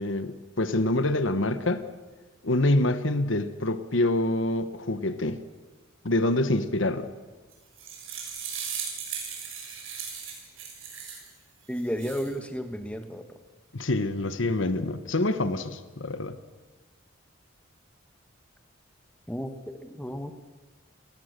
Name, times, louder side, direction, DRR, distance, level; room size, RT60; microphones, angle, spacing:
voice 1, 0.0-1.8 2.4-5.4 6.0-7.1 13.7-16.4, left 1 dB, 65° left, 1.3 m, -26 dB
sound 1, 7.5-11.3 11.8-12.3, right 7 dB, 75° right, 6.7 m, -37 dB
voice 2, 11.7-13.3 19.3-20.3, equal, 5° left, 1.4 m, -33 dB
29.5 x 19.5 x 6.8 m
head